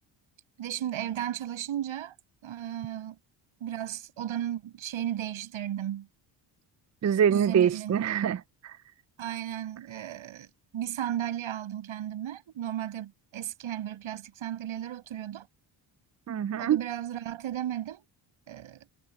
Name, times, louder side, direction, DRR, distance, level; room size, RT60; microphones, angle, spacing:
voice 1, 0.6-2.1 2.4-3.2 3.6-6.1 7.3-8.0 9.2-10.5 10.7-15.5 16.6-18.1 18.5-18.9, right 11 dB, 70° right, 7.1 m, -35 dB
voice 2, 7.0-8.7 16.3-16.8, right 8 dB, 35° right, 0.6 m, -25 dB
cardioid pair, 90°, 48 cm